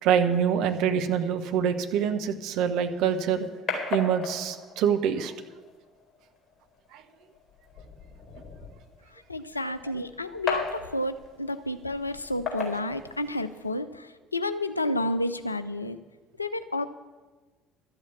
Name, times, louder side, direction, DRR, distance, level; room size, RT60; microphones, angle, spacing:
voice 1, 0.0-3.4 3.9-5.3 6.9-7.0, right 8 dB, 55° right, 6 dB, 1.0 m, -25 dB
sound 1, 2.7-13.7, left 4 dB, 30° left, 4.5 m, -38 dB
voice 2, 9.1-16.0 16.4-16.8, left 1 dB, 85° left, 12 dB, 0.5 m, -31 dB
13.0 x 8.0 x 8.3 m, 1.3 s
figure-of-eight pair, 55°, 0 cm